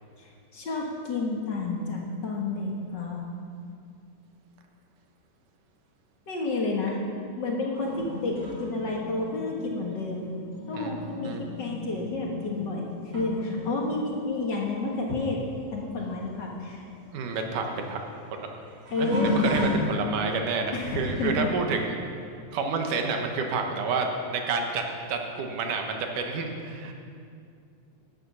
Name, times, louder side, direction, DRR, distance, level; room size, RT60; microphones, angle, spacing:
voice 1, 0.2-3.2 6.3-7.0 7.4-10.3 10.7-15.4 15.7-16.9 18.9-19.4 20.7-21.5, left 3 dB, 50° left, -1 dB, 1.4 m, -30 dB
sound 1, 7.7-15.7 16.0-20.3 20.9-21.3 23.5-23.6 24.5-24.6, left 2 dB, 85° right, 5.3 m, -34 dB
voice 2, 10.7-11.4 17.1-18.0 18.3-18.5 19.0-22.0 22.5-24.8 25.1-26.9, right 4 dB, 70° right, 3 dB, 2.6 m, -29 dB
13.5 x 9.6 x 6.3 m, 2.4 s
omnidirectional pair, 3.9 m